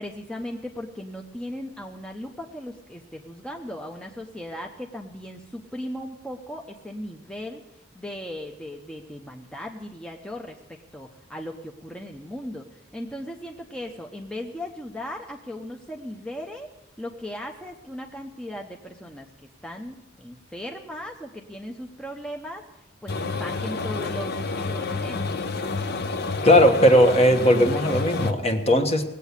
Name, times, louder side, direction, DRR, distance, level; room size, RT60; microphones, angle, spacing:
voice 1, 0.0-7.6 7.9-16.7 17.0-19.3 19.6-25.2, left 1 dB, 5° left, 1 dB, 0.8 m, -37 dB
sound 1, 23.1-28.3, left 3 dB, 50° left, 0.8 m, -29 dB
voice 2, 26.4-29.0, equal, 30° left, 6 dB, 1.2 m, -18 dB
19.0 x 8.3 x 8.2 m, 0.96 s
head